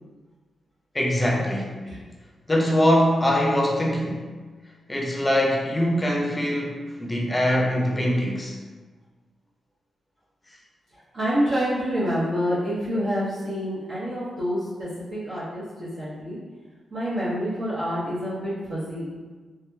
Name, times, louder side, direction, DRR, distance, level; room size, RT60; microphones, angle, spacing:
voice 1, 0.9-1.8 2.5-4.2 4.9-8.6, equal, 15° left, -2 dB, 0.6 m, -22 dB
voice 2, 11.1-16.4 16.9-19.2, equal, 65° right, -12 dB, 1.0 m, -27 dB
3.4 x 2.8 x 2.3 m, 1.4 s
cardioid pair, 95°, 0 cm